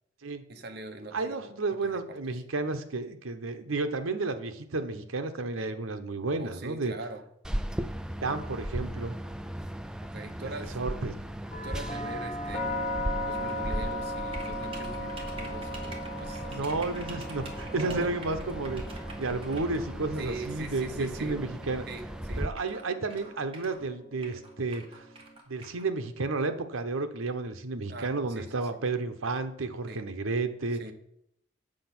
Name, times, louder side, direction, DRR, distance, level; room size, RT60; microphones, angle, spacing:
voice 1, 0.5-2.0 6.4-7.2 10.0-10.8 11.6-12.9 13.2-16.7 17.7-18.1 20.2-21.4 21.9-22.5 27.9-28.7 29.9-30.0 30.8-30.9, right 2 dB, 50° right, 5 dB, 1.1 m, -42 dB
voice 2, 1.1-6.9 7.8-7.9 8.2-9.2 10.6-11.2 16.5-18.8 19.2-21.8 22.4-25.0 25.5-30.8, right 3 dB, 85° right, 8 dB, 0.9 m, -32 dB
sound 1, 7.4-22.5, equal, 5° right, 0.3 m, -37 dB
sound 2, 11.5-25.4, left 1 dB, 40° left, 1.7 m, -39 dB
sound 3, 13.3-13.6 14.3-19.8 20.6-20.8 21.7-21.8 22.0-22.1 22.5-23.8 24.2-25.8, right 3 dB, 25° right, 1.5 m, -47 dB
7.6 x 7.1 x 6.0 m, 0.77 s
head